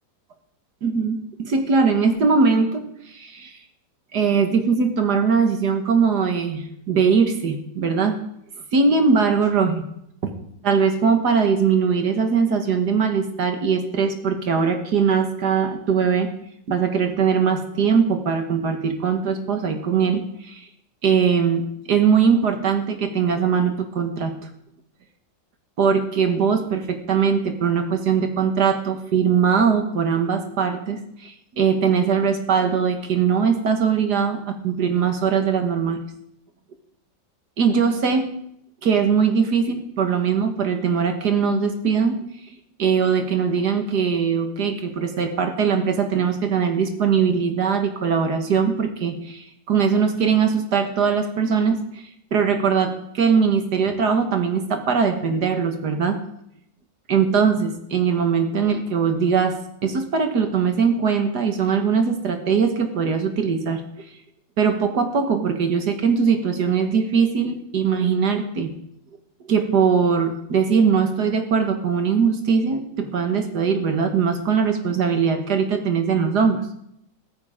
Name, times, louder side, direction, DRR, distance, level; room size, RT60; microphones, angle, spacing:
voice 1, 0.8-3.5 4.1-8.2 8.7-9.8 10.2-10.3 10.6-16.3 16.7-20.6 21.0-24.3 25.8-36.0 37.6-38.3 38.8-42.3 42.8-52.0 52.3-56.2 57.1-59.6 59.8-63.8 64.6-68.7 69.5-76.6, right 6 dB, 60° right, 5 dB, 2.0 m, -21 dB
15.5 x 14.0 x 3.7 m, 0.73 s
omnidirectional pair, 2.1 m